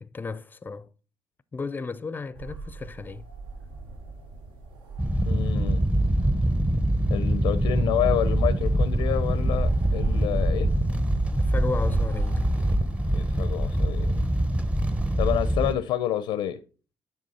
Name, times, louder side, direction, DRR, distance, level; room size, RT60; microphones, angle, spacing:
voice 1, 0.0-0.9 1.5-3.3 11.4-12.5, left 4 dB, 25° left, 0.4 m, -34 dB
sound 1, 2.3-14.1, right 4 dB, 85° right, 1.5 m, -37 dB
sound 2, 5.0-15.7, right 1 dB, 15° right, 0.7 m, -24 dB
voice 2, 5.2-5.8 7.1-10.7 13.1-14.2 15.2-16.6, left 11 dB, 90° left, 0.5 m, -28 dB
9.4 x 3.5 x 4.1 m
cardioid pair, 100°, 8 cm